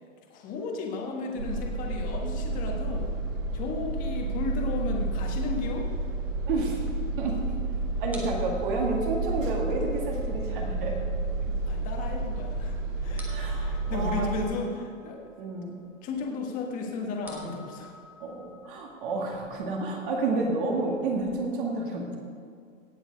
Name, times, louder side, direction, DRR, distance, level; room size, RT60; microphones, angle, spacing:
voice 1, 0.3-3.1 3.5-5.9 11.6-15.3 16.0-17.9, left 4 dB, 20° left, 1 dB, 1.5 m, -34 dB
sound 1, 1.4-14.5, right 2 dB, 75° right, 2.2 m, -31 dB
sound 2, 6.5-21.3, left 1 dB, 5° right, 1.1 m, -53 dB
voice 2, 6.5-6.9 7.2-7.4 8.0-11.0 11.5-11.6 13.3-14.5 15.4-15.8 18.2-22.2, right 3 dB, 40° right, 0 dB, 2.0 m, -30 dB
17.5 x 7.3 x 5.2 m, 2.2 s
hypercardioid pair, 160°, 40 cm